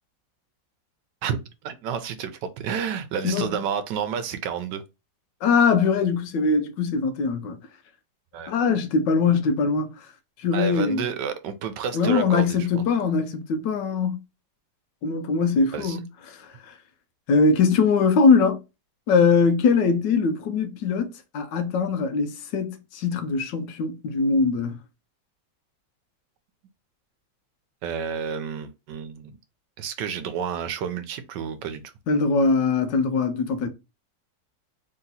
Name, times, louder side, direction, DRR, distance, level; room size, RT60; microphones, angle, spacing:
voice 1, 1.6-4.8 8.3-8.5 10.5-12.8 15.7-16.0 27.8-29.4 29.8-31.8, right 7 dB, 80° right, 1.2 m, -30 dB
voice 2, 3.2-3.6 5.4-7.6 8.5-9.9 10.4-11.0 11.9-14.2 15.0-16.7 17.3-18.6 19.1-24.8 32.1-33.7, left 4 dB, 85° left, 1.4 m, -22 dB
3.6 x 2.8 x 3.9 m
omnidirectional pair, 1.9 m